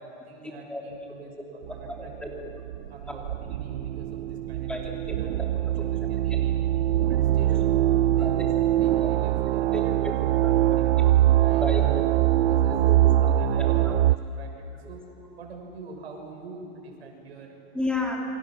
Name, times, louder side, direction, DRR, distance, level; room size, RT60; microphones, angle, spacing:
voice 1, 0.0-2.1 2.9-5.3 5.6-6.6 7.1-9.9 10.8-10.9 11.4-11.8 12.4-12.7 13.0-15.0 15.4-17.6, right 4 dB, 90° right, 2 dB, 6.2 m, -44 dB
sound 1, 1.7-14.2, right 13 dB, 70° right, 0.7 m, -23 dB
voice 2, 1.9-2.3 3.1-3.3 4.7-5.5 8.2-8.3 9.7-10.1 10.4-11.1 11.6-12.0 12.7-12.9 13.2-13.3 13.6-14.0 17.7-18.2, left 2 dB, 5° left, -1 dB, 2.9 m, -33 dB
28.5 x 24.5 x 6.4 m, 2.9 s
supercardioid pair, 140°, 31 cm